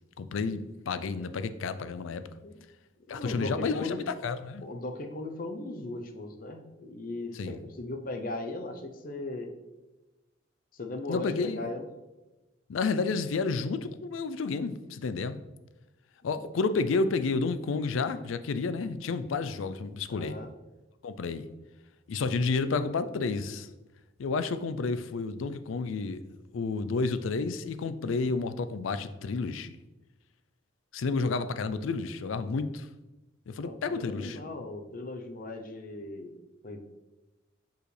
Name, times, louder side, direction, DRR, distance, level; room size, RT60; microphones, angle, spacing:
voice 1, 0.2-2.2 3.1-4.6 7.3-7.6 11.1-11.6 12.7-15.4 16.2-20.4 21.0-21.5 22.1-23.7 24.2-26.2 26.5-29.7 30.9-32.9 33.5-34.4, left 4 dB, 85° left, 12 dB, 0.4 m, -30 dB
voice 2, 3.1-4.0 4.6-9.5 10.7-11.9 16.2-16.5 20.1-20.5 33.6-36.3 36.6-37.0, left 2 dB, 45° left, 6 dB, 0.6 m, -38 dB
6.4 x 5.1 x 3.3 m, 1.1 s
head